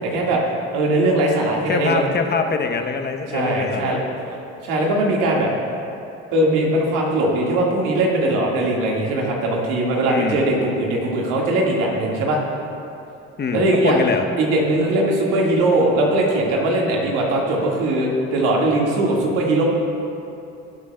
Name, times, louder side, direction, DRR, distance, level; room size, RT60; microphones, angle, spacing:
voice 1, 0.0-0.4 0.7-2.0 3.3-4.0 4.3-4.4 4.6-5.5 6.3-12.4 13.5-14.0 14.4-19.6, right 1 dB, 75° right, -2 dB, 1.8 m, -20 dB
voice 2, 1.7-4.0 10.1-10.4 13.4-14.2, left 5 dB, 35° left, 5 dB, 0.8 m, -23 dB
18.0 x 7.8 x 2.2 m, 2.7 s
supercardioid pair, 70°, 31 cm